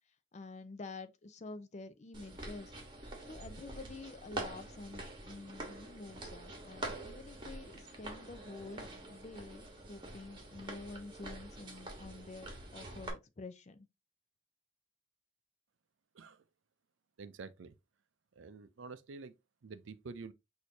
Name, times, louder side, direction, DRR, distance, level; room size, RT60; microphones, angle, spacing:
voice 1, 0.3-2.7 3.3-13.9, left 3 dB, 35° left, 0.5 m, -49 dB
sound 1, 2.1-13.1, right 2 dB, 25° right, 1.2 m, -46 dB
voice 2, 17.2-17.7 18.4-19.4 19.6-20.3, right 4 dB, 80° right, 0.5 m, -48 dB
6.3 x 2.7 x 2.7 m
head